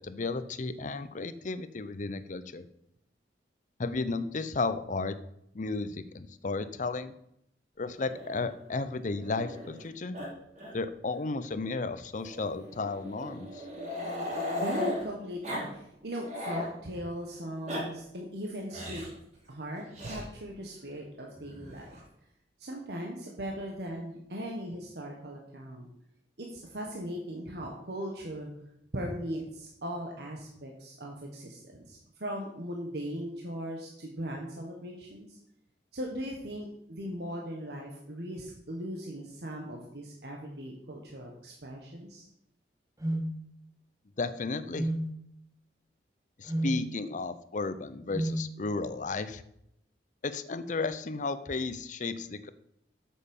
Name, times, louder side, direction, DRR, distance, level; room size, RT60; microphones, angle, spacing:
voice 1, 0.0-2.6 3.8-5.2 5.5-7.1 7.8-10.2 10.7-13.6 44.2-44.9 46.4-49.4 50.2-52.5, left 3 dB, 45° left, 13 dB, 0.6 m, -33 dB
Growling, 8.0-9.8 10.1-10.3 10.5-10.7 11.0-11.1 12.2-15.0 15.4-15.7 16.0-16.7 17.4-17.8 18.7-19.1 19.9-20.2 21.3-22.0, left 1 dB, 40° right, 3.6 m, -37 dB
voice 2, 14.6-19.0 19.5-22.0 22.6-25.9 26.4-28.5 28.9-35.4 35.9-42.2, equal, 65° right, 0 dB, 1.4 m, -39 dB
sound 1, 43.0-43.3 44.7-45.1 46.5-46.8 48.1-48.4, right 1 dB, 20° right, 0.9 m, -30 dB
8.3 x 7.5 x 5.4 m, 0.77 s
head